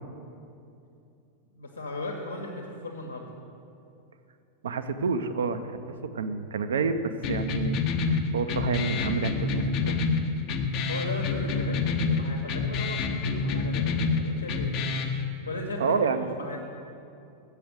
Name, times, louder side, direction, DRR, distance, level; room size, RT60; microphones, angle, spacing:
voice 1, 1.5-3.3 10.9-14.7 15.5-16.6, left 2 dB, 75° left, 1 dB, 1.0 m, -37 dB
voice 2, 4.6-5.7 6.1-7.8 8.1-10.0 15.8-16.3, right 5 dB, 65° right, 10 dB, 0.5 m, -28 dB
sound 1, 7.2-15.2, left 4 dB, 40° left, 0.7 m, -28 dB
7.7 x 6.5 x 6.7 m, 2.6 s
figure-of-eight pair, 90°, 0 cm